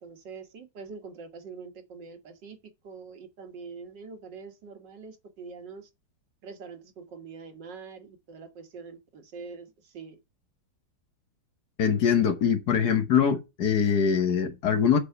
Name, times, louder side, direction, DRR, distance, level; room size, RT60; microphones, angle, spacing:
voice 1, 0.0-2.6 2.8-5.9 6.4-10.2, right 5 dB, 70° right, 2.0 m, -44 dB
voice 2, 11.8-15.0, left 7 dB, 60° left, 1.7 m, -23 dB
7.2 x 4.8 x 6.5 m
omnidirectional pair, 2.0 m